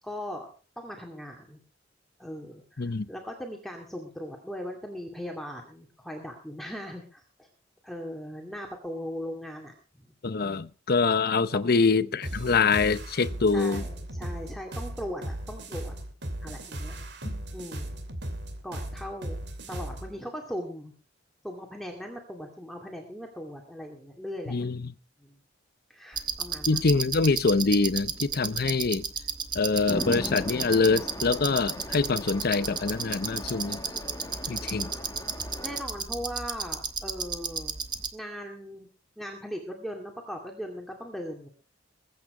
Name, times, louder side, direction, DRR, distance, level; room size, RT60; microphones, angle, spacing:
voice 1, 0.0-0.5 0.8-1.6 2.2-7.5 7.8-9.7 11.5-11.8 13.5-15.9 16.4-17.0 17.5-18.0 18.6-19.4 19.7-20.9 21.4-24.6 25.2-25.4 25.9-26.9 35.6-37.7 38.1-38.9 39.2-41.5, equal, ahead, 2.3 m, -39 dB
voice 2, 10.2-13.8 17.2-17.3 24.5-24.9 26.7-29.0 29.5-33.8 34.5-34.9, left 4 dB, 55° left, 0.7 m, -25 dB
sound 1, 12.2-20.1, right 1 dB, 60° right, 2.7 m, -37 dB
sound 2, 26.1-38.1, right 6 dB, 25° right, 1.2 m, -34 dB
Chatter / Traffic noise roadway noise / Train, 29.9-35.8, left 1 dB, 20° left, 1.4 m, -38 dB
21.5 x 8.8 x 4.9 m
head